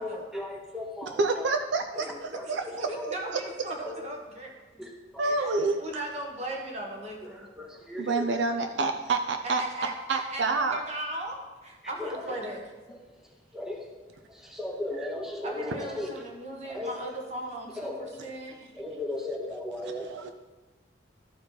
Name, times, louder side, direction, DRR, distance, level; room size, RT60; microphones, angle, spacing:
voice 1, 0.0-1.5 2.0-2.1 2.3-3.1 3.8-4.0 4.8-5.7 7.2-8.3 12.0-12.5 12.9-13.0 13.5-13.9 14.3-16.1 16.6-17.0 17.8-18.2 18.7-20.3, left 2 dB, 5° right, 0 dB, 0.7 m, -37 dB
voice 2, 1.2-3.4 3.8-3.9 5.2-5.8 8.0-9.6 10.1-10.8 20.0-20.3, right 3 dB, 70° right, 6 dB, 0.5 m, -28 dB
voice 3, 2.3-4.8 5.2-5.5 5.8-7.5 9.4-12.6 15.4-18.5, right 1 dB, 35° right, 0 dB, 1.4 m, -38 dB
12.5 x 4.7 x 3.9 m, 1.2 s
head